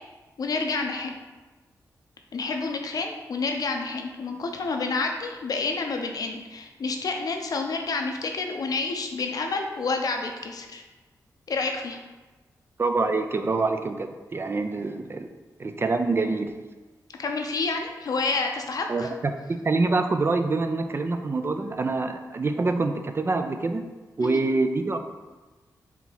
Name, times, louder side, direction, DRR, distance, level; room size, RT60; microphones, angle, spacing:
voice 1, 0.4-1.2 2.3-10.8 11.5-12.0 17.2-19.1 24.2-24.4, left 3 dB, 65° left, 3 dB, 0.6 m, -29 dB
voice 2, 12.8-15.3 15.6-16.6 18.9-19.3 19.6-23.9 24.2-25.0, right 3 dB, 35° right, 7 dB, 0.4 m, -25 dB
4.4 x 2.8 x 3.9 m, 1.2 s
cardioid pair, 65°, 7 cm